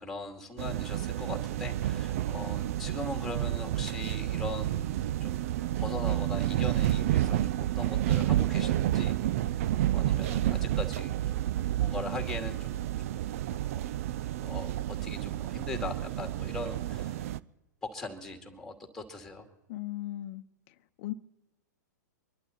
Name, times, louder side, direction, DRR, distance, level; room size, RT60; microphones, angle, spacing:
voice 1, 0.0-5.5 5.8-9.1 9.5-11.5 11.7-12.8 13.1-13.2 13.6-13.8 14.4-17.2 17.8-19.5, left 2 dB, 5° left, 2.3 m, -40 dB
sound 1, 0.6-17.4, right 13 dB, 50° right, 0.5 m, -30 dB
voice 2, 19.7-21.1, left 15 dB, 45° left, 0.9 m, -38 dB
24.5 x 11.5 x 4.1 m
figure-of-eight pair, 110°, 10 cm